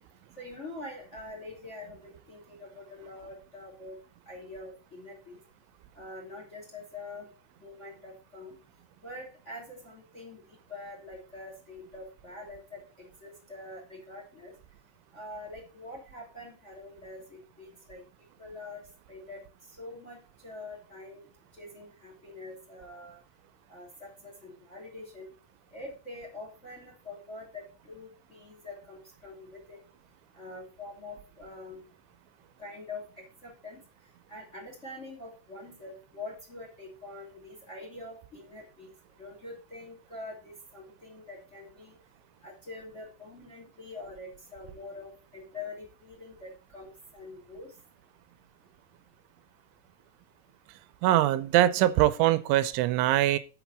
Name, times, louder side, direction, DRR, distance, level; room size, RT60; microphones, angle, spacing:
voice 1, 0.4-4.0 4.3-5.4 5.9-7.3 7.6-8.6 9.0-14.5 15.1-18.0 18.4-18.8 19.1-19.4 19.8-21.2 21.6-23.2 23.7-25.3 25.7-29.8 30.4-31.8 32.6-33.8 34.3-38.9 39.2-41.9 42.4-47.7, left 2 dB, 20° left, 2.1 m, -45 dB
voice 2, 51.0-53.4, right 14 dB, 85° right, 3.1 m, -23 dB
7.1 x 6.0 x 7.2 m
omnidirectional pair, 5.5 m